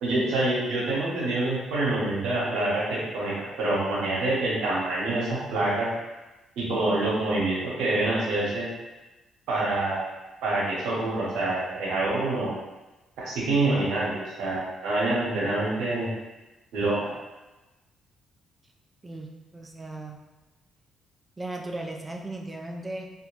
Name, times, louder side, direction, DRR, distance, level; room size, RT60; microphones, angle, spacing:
voice 1, 0.0-5.9 6.6-8.7 9.5-10.1 10.4-12.5 13.2-16.1 16.7-17.1, right 2 dB, 90° right, -6 dB, 0.9 m, -26 dB
voice 2, 19.0-20.2 21.4-23.1, right 2 dB, 25° right, 1 dB, 0.3 m, -37 dB
2.4 x 2.1 x 3.0 m, 1.1 s
cardioid pair, 90°, 0 cm